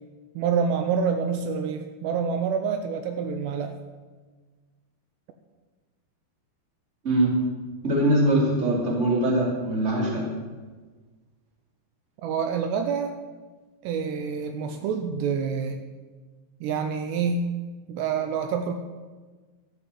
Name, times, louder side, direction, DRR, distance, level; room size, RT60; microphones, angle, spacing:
voice 1, 0.4-3.7 12.2-13.1 13.8-15.8 16.6-17.5 17.9-18.7, right 6 dB, 80° right, 6 dB, 2.8 m, -27 dB
voice 2, 7.0-7.5 7.8-10.3, right 1 dB, 20° right, -3 dB, 2.6 m, -22 dB
13.5 x 7.7 x 7.6 m, 1.4 s
omnidirectional pair, 5.1 m